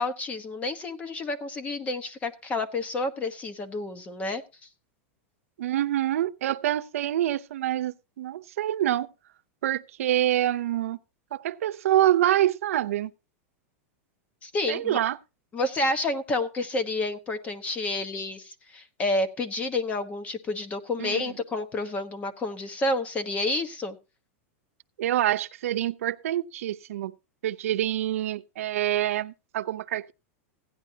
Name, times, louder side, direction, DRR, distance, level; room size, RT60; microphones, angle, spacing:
voice 1, 0.0-4.4 14.4-15.0 15.5-24.0, left 2 dB, 20° left, 1.1 m, -29 dB
voice 2, 5.6-9.1 9.6-11.0 11.3-13.1 14.7-15.2 21.0-21.2 25.0-27.1 27.4-30.1, right 13 dB, 85° right, 0.6 m, -26 dB
16.0 x 10.5 x 2.8 m
supercardioid pair, 160°, 7 cm